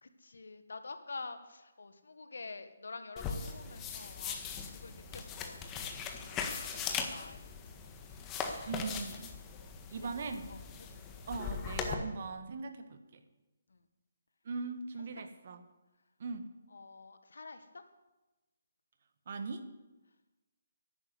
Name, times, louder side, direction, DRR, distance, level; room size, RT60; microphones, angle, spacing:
voice 1, 0.0-8.7 9.4-9.6 9.9-11.0 13.7-13.8 16.7-17.8, left 3 dB, 75° left, 9 dB, 1.5 m, -49 dB
sound 1, 3.2-11.9, left 6 dB, 20° left, 1.6 m, -40 dB
voice 2, 8.7-9.3 9.9-10.6 11.3-13.2 14.4-15.6 16.2-16.5 19.2-19.7, right 4 dB, 55° right, 8 dB, 1.6 m, -40 dB
11.0 x 10.5 x 8.0 m, 1.1 s
figure-of-eight pair, 145°, 0 cm